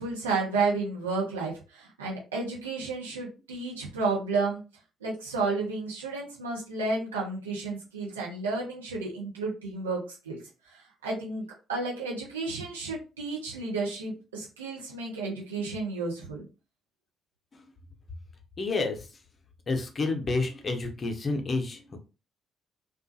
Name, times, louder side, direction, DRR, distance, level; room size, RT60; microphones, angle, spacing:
voice 1, 0.0-4.6 5.0-10.4 10.7-11.4 11.7-16.5, right 3 dB, 85° right, -4 dB, 0.8 m, -32 dB
voice 2, 18.6-19.1 19.7-22.0, left 3 dB, 40° left, 4 dB, 0.7 m, -29 dB
2.5 x 2.3 x 2.6 m, 0.31 s
figure-of-eight pair, 45°, 0 cm